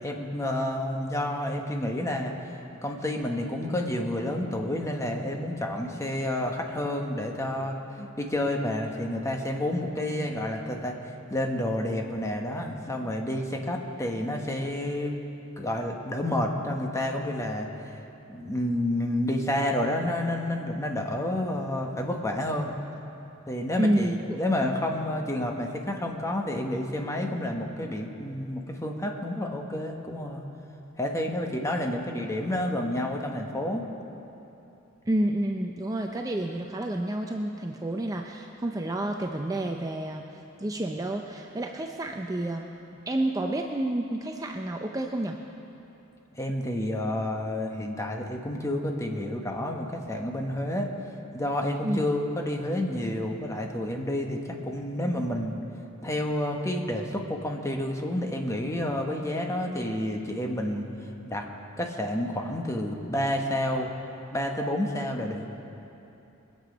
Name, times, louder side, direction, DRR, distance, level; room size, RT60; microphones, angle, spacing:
voice 1, 0.0-2.3 2.8-7.8 8.2-15.2 15.6-18.0 18.3-22.7 23.5-30.5 31.0-33.8 46.3-50.9 51.3-55.6 56.0-60.9 61.3-61.4 61.8-63.9 64.3-65.5, left 1 dB, 15° left, 2 dB, 1.1 m, -29 dB
voice 2, 23.8-24.4 35.1-40.2 40.6-42.7 43.1-45.4 51.8-52.0, right 1 dB, 15° right, 3 dB, 0.5 m, -29 dB
22.0 x 7.9 x 5.2 m, 2.9 s
head